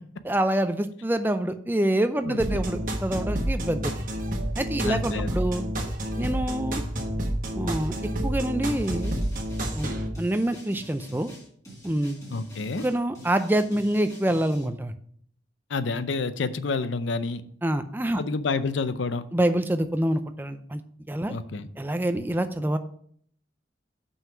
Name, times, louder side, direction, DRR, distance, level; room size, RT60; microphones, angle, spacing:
voice 1, 0.2-3.9 4.6-5.6 6.2-6.8 7.5-7.9 8.2-9.1 9.7-9.9 10.2-11.3 11.8-12.2 12.8-14.9 17.6-18.2 19.3-20.8 21.1-21.4 21.8-22.8, right 1 dB, 10° right, 9 dB, 0.4 m, -26 dB
sound 1, 2.4-10.1, equal, 45° right, 1.3 m, -29 dB
voice 2, 4.8-5.3 12.3-12.9 15.7-17.4 18.2-19.2 21.3-21.7, left 4 dB, 80° left, 13 dB, 0.5 m, -29 dB
sound 2, 8.7-14.7, right 1 dB, 20° left, 2.1 m, -46 dB
5.8 x 5.6 x 5.9 m, 0.63 s
head